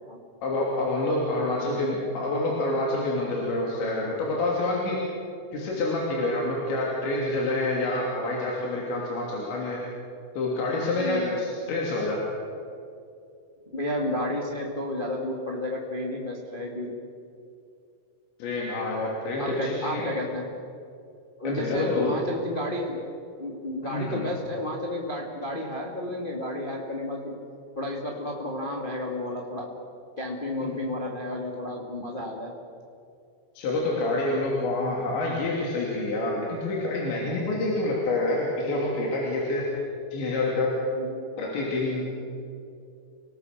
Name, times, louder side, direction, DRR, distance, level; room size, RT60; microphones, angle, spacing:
voice 1, 0.4-5.0 5.5-9.8 10.4-12.2 18.4-20.1 21.5-22.1 23.8-24.2 33.6-39.6 40.1-40.7 41.4-42.1, left 2 dB, 70° left, -3 dB, 5.2 m, -27 dB
voice 2, 1.3-1.7 10.9-11.4 13.7-16.9 19.4-20.4 21.4-23.0 23.4-27.4 27.7-29.7 30.2-32.5 41.0-41.2, left 1 dB, 30° left, -1 dB, 0.8 m, -31 dB
29.5 x 19.0 x 6.7 m, 2.5 s
omnidirectional pair, 5.5 m